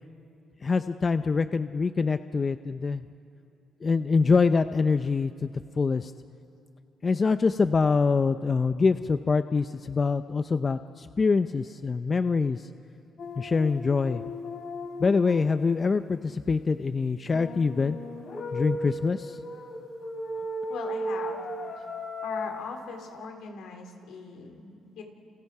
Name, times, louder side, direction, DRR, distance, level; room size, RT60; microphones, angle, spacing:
voice 1, 0.6-3.0 3.8-6.1 7.0-12.7 13.4-14.2 15.0-18.0 18.5-19.4, left 4 dB, 35° left, 11 dB, 0.6 m, -25 dB
sound 1, 13.2-15.5 17.3-22.5, equal, 60° left, 3.4 m, -36 dB
voice 2, 20.7-21.5 21.8-21.9 22.2-25.0, left 5 dB, 80° left, 3 dB, 3.6 m, -40 dB
30.0 x 29.5 x 4.8 m, 2.7 s
cardioid pair, 90°, 0 cm